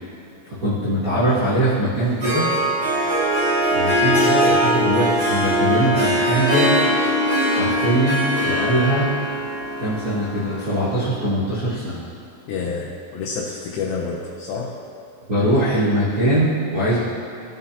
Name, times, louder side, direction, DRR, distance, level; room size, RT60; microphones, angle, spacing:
voice 1, 0.4-2.5 3.7-6.7 7.5-9.1 9.8-12.0 15.3-17.0, right 1 dB, 70° right, -10 dB, 0.8 m, -21 dB
Harp, 2.0-10.9, equal, 40° right, 2.2 m, -21 dB
voice 2, 12.5-14.8, left 5 dB, 85° left, -5 dB, 2.5 m, -28 dB
14.5 x 5.5 x 2.9 m, 2.8 s
omnidirectional pair, 4.2 m